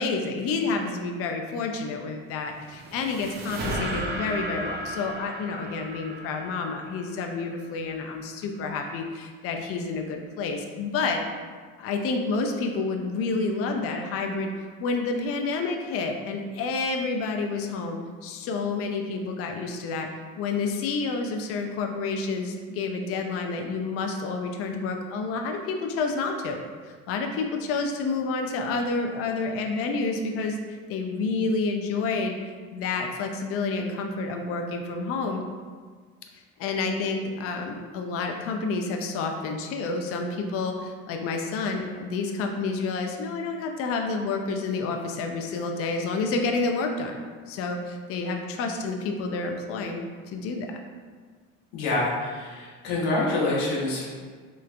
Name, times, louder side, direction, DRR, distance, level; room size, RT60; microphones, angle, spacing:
voice 1, 0.0-11.2 11.8-14.5 14.8-20.1 20.4-26.6 26.9-30.6 30.9-35.4 36.6-50.8, left 4 dB, 50° left, 3 dB, 0.4 m, -29 dB
sound 1, 2.3-7.7, right 1 dB, 35° right, 0.6 m, -35 dB
voice 2, 51.7-54.1, left 2 dB, 70° left, -4 dB, 0.9 m, -26 dB
3.2 x 3.1 x 2.4 m, 1.6 s
supercardioid pair, 100°, 30 cm